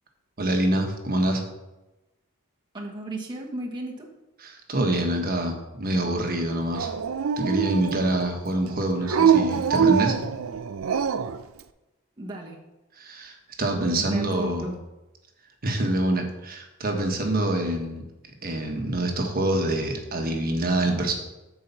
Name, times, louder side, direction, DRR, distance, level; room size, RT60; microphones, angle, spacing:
voice 1, 0.4-1.4 4.4-6.9 7.4-10.2 13.0-14.7 15.6-18.0 18.4-21.1, right 1 dB, 45° right, 3 dB, 1.3 m, -26 dB
voice 2, 2.7-4.1 12.2-12.6 14.0-14.8, right 1 dB, 20° right, -2 dB, 1.1 m, -34 dB
Dog, 6.7-8.2 9.0-11.4, right 7 dB, 75° right, 0.5 m, -23 dB
8.5 x 4.7 x 6.8 m, 1.0 s
head